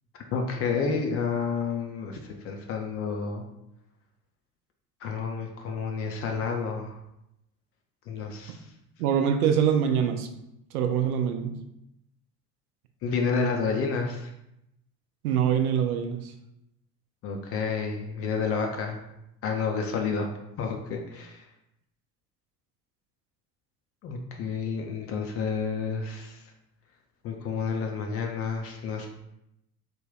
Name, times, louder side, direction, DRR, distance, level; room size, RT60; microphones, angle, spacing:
voice 1, 0.1-3.4 5.0-7.0 8.1-8.7 13.0-14.3 17.2-19.0 19.4-20.3 20.6-21.4 24.0-26.5 27.2-29.1, left 5 dB, 30° left, 3 dB, 0.4 m, -30 dB
voice 2, 9.0-10.3 10.7-11.6 15.2-16.3, right 8 dB, 65° right, 6 dB, 0.6 m, -24 dB
3.3 x 2.2 x 3.7 m, 0.83 s
figure-of-eight pair, 60°, 49 cm